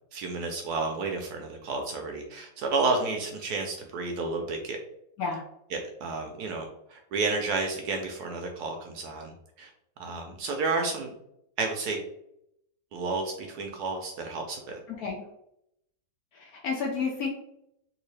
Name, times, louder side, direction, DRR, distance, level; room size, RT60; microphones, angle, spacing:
voice 1, 0.1-4.8 5.7-9.3 9.6-9.7 10.0-11.1 11.6-12.0 12.9-14.8, right 3 dB, 70° right, 3 dB, 1.0 m, -31 dB
voice 2, 14.9-15.2 16.3-17.3, left 5 dB, 70° left, 0 dB, 0.9 m, -31 dB
3.6 x 2.7 x 3.1 m, 0.77 s
omnidirectional pair, 2.0 m